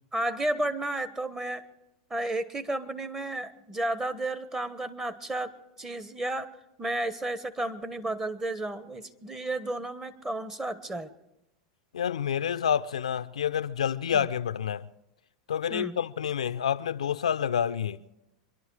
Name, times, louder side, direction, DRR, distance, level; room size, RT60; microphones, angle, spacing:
voice 1, 0.1-1.6 2.1-5.5 5.8-6.5 6.8-11.1 14.1-14.3 15.7-16.0, right 1 dB, 15° right, 1.2 m, -32 dB
voice 2, 11.9-14.9 15.5-18.0, left 8 dB, 90° left, 0.5 m, -28 dB
25.0 x 11.5 x 4.8 m
hypercardioid pair, 105°, 3 cm